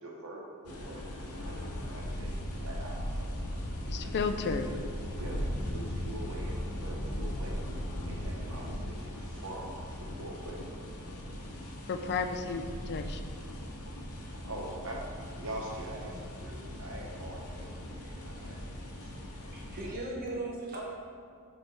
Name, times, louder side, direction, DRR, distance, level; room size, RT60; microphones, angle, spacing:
voice 1, 0.0-3.3 3.9-4.8 5.2-11.2 14.3-15.0 15.4-19.6, right 1 dB, 65° right, -2 dB, 1.1 m, -44 dB
sound 1, 0.7-19.9, equal, 85° left, 0.9 m, -38 dB
voice 2, 3.9-4.7 11.9-13.4, left 4 dB, 50° left, 8 dB, 0.4 m, -33 dB
voice 3, 19.5-20.8, right 2 dB, 45° right, -3 dB, 1.2 m, -37 dB
7.0 x 3.4 x 4.5 m, 2.2 s
head